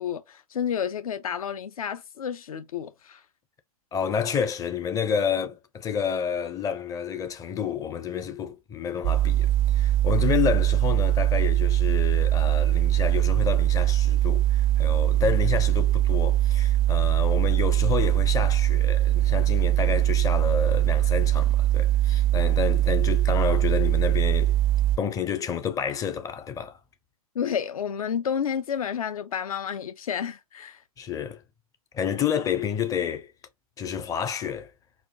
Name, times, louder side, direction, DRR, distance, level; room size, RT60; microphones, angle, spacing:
voice 1, 0.0-3.2 27.3-30.8, left 8 dB, 65° left, 0.7 m, -30 dB
voice 2, 3.9-24.6 25.0-26.8 31.0-31.4 31.9-33.3 33.8-34.7, left 7 dB, 15° left, 0.6 m, -29 dB
sound 1, 9.0-25.0, right 13 dB, 30° right, 0.4 m, -22 dB
4.3 x 2.5 x 2.8 m
figure-of-eight pair, 110°, 19 cm